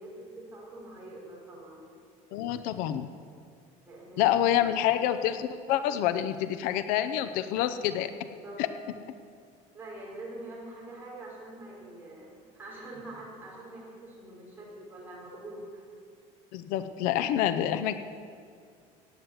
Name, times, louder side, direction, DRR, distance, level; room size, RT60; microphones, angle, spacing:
voice 1, 0.0-1.8 3.9-4.3 4.6-4.7 8.2-8.6 9.7-15.8, right 1 dB, 15° right, -5 dB, 5.3 m, -45 dB
voice 2, 2.3-3.1 4.2-8.1 8.6-8.7 16.5-17.9, left 11 dB, 70° left, 11 dB, 0.7 m, -27 dB
17.0 x 9.5 x 8.2 m, 2.3 s
cardioid pair, 170°, 15 cm